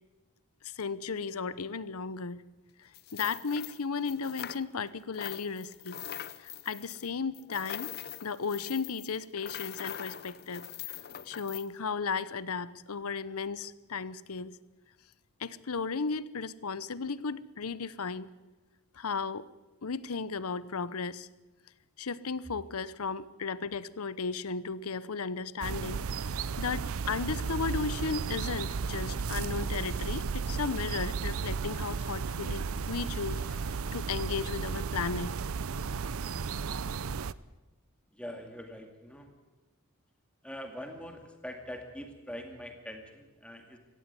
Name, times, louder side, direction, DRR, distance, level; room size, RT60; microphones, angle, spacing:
voice 1, 0.6-2.4 2.8-6.0 6.4-8.0 8.2-10.6 11.3-14.6 15.4-18.3 18.9-19.5 19.8-21.3 22.0-35.3, left 5 dB, 85° left, 18 dB, 0.8 m, -35 dB
sound 1, 2.9-4.9 5.1-11.7, left 11 dB, 45° left, 0.6 m, -43 dB
sound 2, 25.6-37.3, right 5 dB, 70° right, 0.6 m, -34 dB
voice 2, 38.1-39.3 40.4-43.8, equal, 5° left, 4 dB, 2.2 m, -43 dB
17.0 x 16.0 x 9.7 m, 1.1 s
head